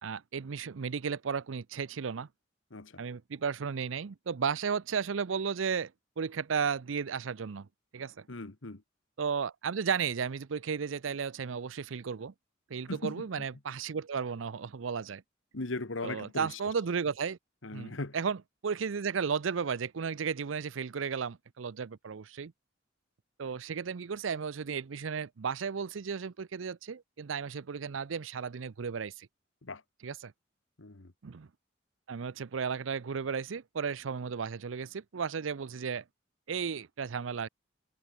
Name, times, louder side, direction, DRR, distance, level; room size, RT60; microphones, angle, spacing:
voice 1, 0.0-2.3 3.0-5.9 6.2-7.7 7.9-8.3 9.2-12.3 12.7-15.2 16.0-17.4 17.7-22.5 23.4-29.3 30.0-30.3 31.2-31.5 32.1-36.0 36.5-37.5, right 6 dB, 90° right, 0.6 m, -34 dB
voice 2, 2.7-3.0 8.3-8.8 12.9-13.3 15.5-16.6 17.6-18.1 29.6-29.8 30.8-31.1, left 2 dB, 85° left, 1.6 m, -38 dB
head